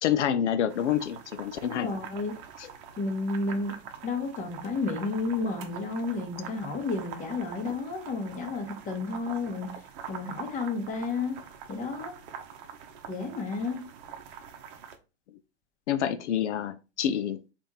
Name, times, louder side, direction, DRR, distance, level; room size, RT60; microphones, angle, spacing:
voice 1, 0.0-1.9 2.6-2.7 15.9-17.5, left 9 dB, 80° left, 0.5 m, -28 dB
sound 1, 0.7-15.0, right 7 dB, 50° right, 0.8 m, -44 dB
voice 2, 1.7-2.3 3.0-3.7 4.0-9.8 10.1-11.4 11.7-12.1 13.1-13.8, left 3 dB, 20° left, 1.1 m, -31 dB
3.4 x 2.5 x 4.1 m
hypercardioid pair, 115°, 34 cm